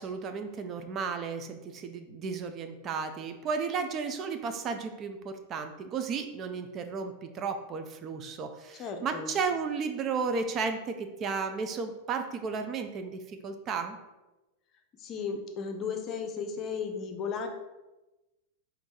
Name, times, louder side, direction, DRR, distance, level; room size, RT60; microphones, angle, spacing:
voice 1, 0.0-14.0, right 5 dB, 30° right, 7 dB, 0.4 m, -34 dB
voice 2, 8.8-9.3 15.0-17.5, left 6 dB, 30° left, 5 dB, 0.6 m, -35 dB
4.5 x 2.6 x 4.3 m, 1.0 s
figure-of-eight pair, 90°, 0 cm